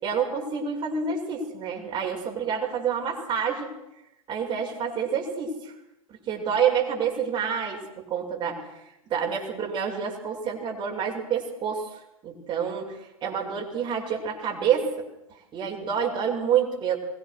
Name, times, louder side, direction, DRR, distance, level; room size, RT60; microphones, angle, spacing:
voice 1, 0.0-3.7 4.3-5.7 6.1-17.0, right 7 dB, 25° right, 0 dB, 7.5 m, -28 dB
25.5 x 22.0 x 6.5 m, 0.88 s
hypercardioid pair, 110°, 18 cm